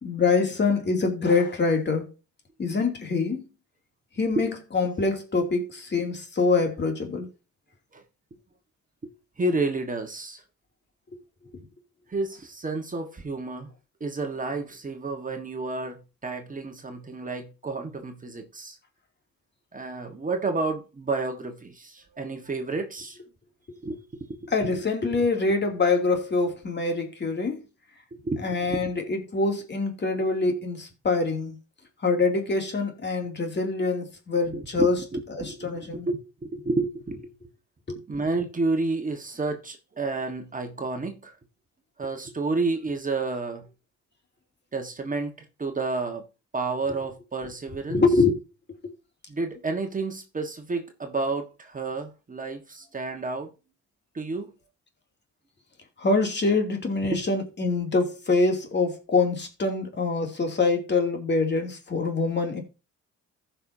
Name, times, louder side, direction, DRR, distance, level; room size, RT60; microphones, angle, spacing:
voice 1, 0.0-2.1 2.6-3.4 4.2-4.5 4.7-7.3 24.5-27.6 28.4-31.5 32.0-35.0 35.3-36.1 37.9-38.0 47.9-48.4 56.0-62.6, left 3 dB, 35° left, 2.7 m, -25 dB
voice 2, 9.0-10.4 12.1-13.7 14.0-18.8 19.7-23.2 23.8-24.7 28.1-28.9 34.5-37.3 38.1-41.4 42.0-43.7 44.7-45.3 45.6-46.3 46.5-48.0 49.3-53.5 54.1-54.5 57.0-57.2, right 3 dB, 25° right, 1.5 m, -30 dB
15.0 x 5.7 x 2.7 m
cardioid pair, 90°, 30 cm